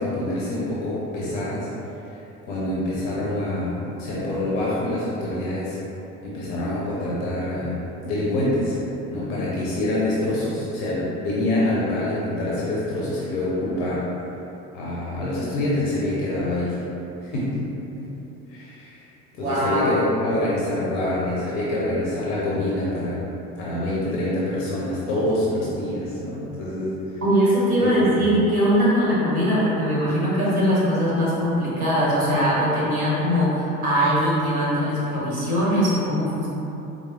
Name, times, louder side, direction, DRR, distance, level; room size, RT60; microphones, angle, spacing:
voice 1, 0.0-1.7 2.1-5.8 6.2-8.8 9.1-14.0 14.7-16.8 17.2-18.1 18.5-19.0 19.4-23.2 23.6-27.2 27.8-28.2, left 1 dB, 60° left, -7 dB, 0.8 m, -26 dB
voice 2, 19.4-19.9 27.2-36.5, equal, 75° right, -8 dB, 1.0 m, -21 dB
4.5 x 2.2 x 3.0 m, 3.0 s
figure-of-eight pair, 55°, 42 cm